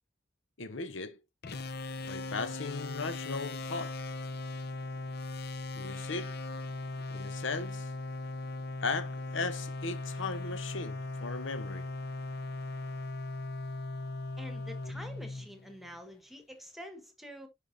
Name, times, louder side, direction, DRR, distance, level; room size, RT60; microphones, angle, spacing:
voice 1, 0.6-1.2 2.1-4.0 5.8-6.4 7.1-7.9 8.8-11.9, left 4 dB, 80° left, 0.9 m, -37 dB
sound 1, 1.4-16.0, left 2 dB, 60° left, 0.7 m, -39 dB
voice 2, 14.4-17.5, equal, ahead, 1.5 m, -47 dB
10.5 x 4.9 x 2.7 m
head